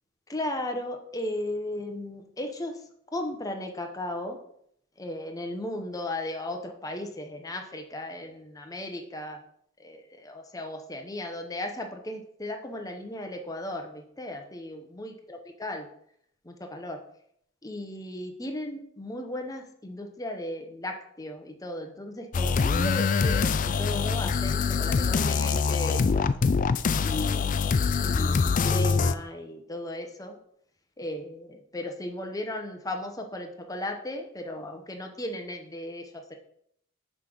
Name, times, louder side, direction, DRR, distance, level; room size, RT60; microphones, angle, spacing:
voice 1, 0.3-2.8 3.1-4.4 5.0-9.4 9.8-15.9 16.4-17.0 17.6-26.4 27.0-27.6 28.0-30.4 31.0-36.4, left 1 dB, 15° left, 4 dB, 0.8 m, -36 dB
sound 1, 22.3-29.1, left 5 dB, 40° left, 0.3 m, -24 dB
5.8 x 5.1 x 6.1 m, 0.69 s
head